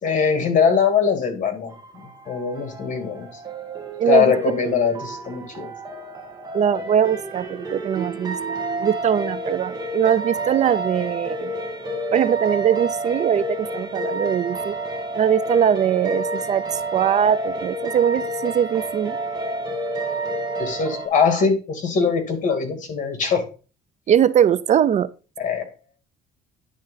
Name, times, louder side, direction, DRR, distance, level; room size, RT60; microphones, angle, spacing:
voice 1, 0.0-1.7 2.3-3.3 4.1-5.7 20.6-23.4 25.4-25.7, left 6 dB, 50° left, 2.6 m, -21 dB
sound 1, 1.7-21.1, right 2 dB, 25° right, 2.0 m, -30 dB
voice 2, 4.0-4.4 6.5-8.4 8.8-11.5 12.1-14.7 15.2-19.2 24.1-25.1, right 9 dB, 45° right, 0.4 m, -21 dB
10.0 x 3.8 x 5.6 m
cardioid pair, 110°, 17 cm